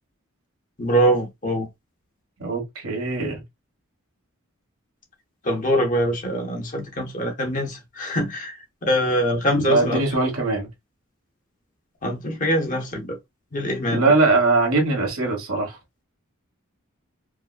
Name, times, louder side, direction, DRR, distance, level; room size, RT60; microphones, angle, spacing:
voice 1, 0.8-1.7 5.4-10.0 12.0-13.2 13.5-14.0, equal, 35° left, 0.9 m, -23 dB
voice 2, 2.4-3.4 9.5-10.7 13.9-15.8, right 3 dB, 90° right, 1.4 m, -21 dB
4.7 x 2.1 x 2.3 m
head